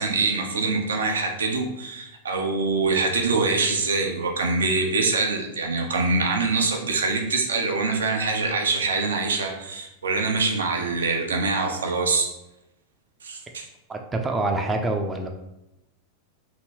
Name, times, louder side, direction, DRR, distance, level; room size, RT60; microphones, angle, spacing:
voice 1, 0.0-12.3 13.2-13.7, right 3 dB, 70° right, 3 dB, 0.6 m, -24 dB
voice 2, 13.9-15.3, right 2 dB, 15° right, 3 dB, 0.5 m, -26 dB
3.0 x 2.9 x 4.5 m, 0.91 s
figure-of-eight pair, 90°, 0 cm